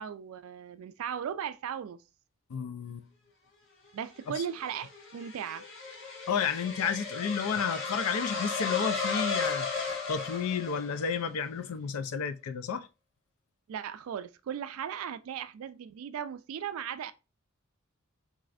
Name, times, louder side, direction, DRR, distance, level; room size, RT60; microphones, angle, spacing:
voice 1, 0.0-2.0 3.9-5.6 13.7-17.1, right 8 dB, 70° right, 0.3 m, -37 dB
voice 2, 2.5-3.1 6.3-9.7 10.1-12.9, left 6 dB, 90° left, 0.4 m, -31 dB
sound 1, 4.2-11.3, left 4 dB, 65° left, 1.4 m, -35 dB
4.1 x 2.4 x 2.4 m
head